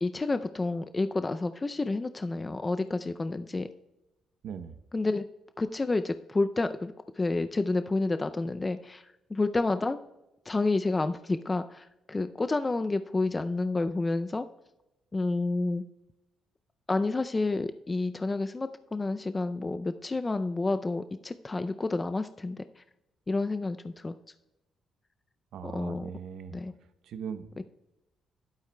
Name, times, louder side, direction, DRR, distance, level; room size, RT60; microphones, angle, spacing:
voice 1, 0.0-3.7 4.9-5.2 5.6-10.0 10.5-14.5 15.1-15.8 16.9-22.8 23.3-24.2 25.6-26.1 26.5-26.7 27.6-27.7, left 3 dB, 25° left, 10 dB, 0.4 m, -29 dB
voice 2, 4.4-4.8 25.5-26.6 27.0-27.5, right 7 dB, 75° right, 10 dB, 0.8 m, -39 dB
13.5 x 11.5 x 2.2 m, 0.96 s
cardioid pair, 90°, 0 cm